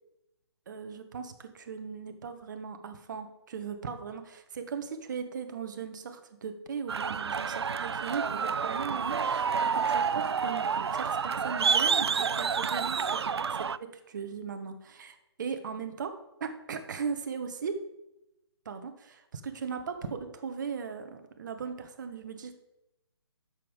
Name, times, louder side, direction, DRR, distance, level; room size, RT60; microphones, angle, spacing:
voice 1, 0.7-13.2 13.5-16.1 16.4-17.8 18.6-22.6, right 6 dB, 45° right, 7 dB, 1.2 m, -38 dB
sound 1, 6.9-13.8, right 6 dB, 70° right, 0.4 m, -29 dB
10.5 x 7.0 x 5.1 m, 0.92 s
figure-of-eight pair, 140°, 14 cm